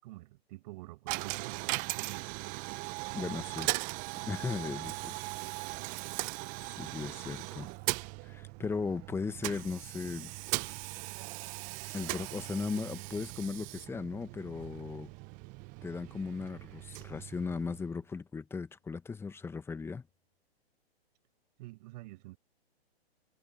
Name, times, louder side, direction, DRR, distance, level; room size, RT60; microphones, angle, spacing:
voice 1, 0.0-2.4 21.6-22.4, right 20 dB, 40° right, 6.4 m, -48 dB
Coin (dropping), 1.1-18.0, right 25 dB, 25° right, 0.9 m, -39 dB
voice 2, 3.1-3.8 4.3-5.1 6.8-7.7 8.2-10.3 11.9-15.1 15.8-20.0, left 4 dB, 5° left, 1.3 m, -37 dB
hypercardioid pair, 130°, 32 cm